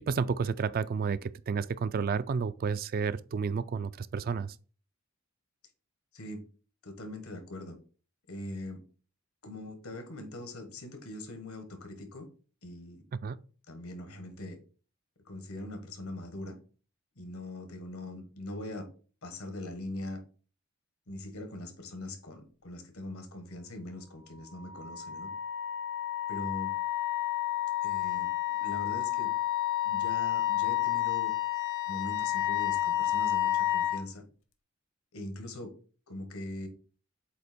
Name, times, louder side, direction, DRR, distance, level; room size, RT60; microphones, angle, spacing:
voice 1, 0.1-4.6 13.2-13.4, right 5 dB, 45° right, 0.3 m, -31 dB
voice 2, 6.8-7.8 8.3-8.8 9.4-12.3 12.6-13.0 13.7-14.6 15.2-16.5 17.2-18.9 19.2-20.2 21.1-25.3 26.3-26.7 27.8-29.3 29.8-31.3 31.9-34.2 35.1-35.7 36.1-36.7, left 1 dB, 85° left, 1.3 m, -41 dB
Wind instrument woodwind instrument, 24.6-34.0, left 13 dB, 65° left, 0.8 m, -30 dB
7.9 x 2.9 x 4.2 m
head